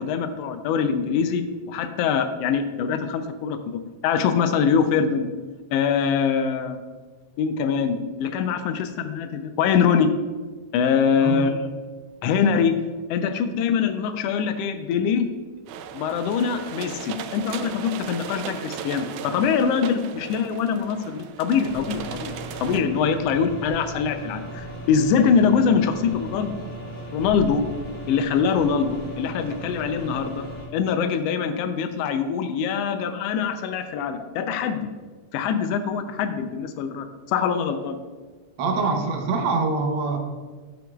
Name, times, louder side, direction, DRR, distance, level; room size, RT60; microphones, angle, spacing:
voice 1, 0.0-3.6 4.0-5.3 5.7-6.8 7.4-10.1 10.7-11.7 12.2-12.7 13.1-15.3 15.9-26.6 27.1-27.6 28.1-30.5 30.7-34.9 35.3-38.0, left 6 dB, 80° left, 8 dB, 1.4 m, -23 dB
voice 2, 11.2-11.5 38.6-40.2, right 4 dB, 60° right, 2 dB, 1.2 m, -24 dB
sound 1, 15.7-22.8, right 7 dB, 85° right, 2.0 m, -37 dB
sound 2, 21.6-30.7, right 1 dB, 25° left, 1.4 m, -37 dB
11.5 x 7.7 x 2.3 m, 1.4 s
omnidirectional pair, 3.4 m